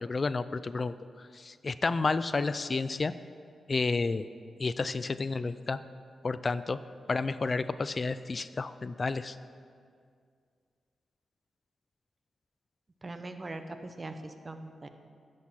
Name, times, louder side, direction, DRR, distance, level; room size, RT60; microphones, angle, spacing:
voice 1, 0.0-0.9 1.3-3.1 3.7-4.3 4.6-5.8 6.2-6.8 7.1-9.4, left 3 dB, 45° left, 14 dB, 0.3 m, -30 dB
voice 2, 13.0-14.9, right 2 dB, 35° right, 8 dB, 0.9 m, -41 dB
10.5 x 6.5 x 5.7 m, 2.2 s
cardioid pair, 55°, 0 cm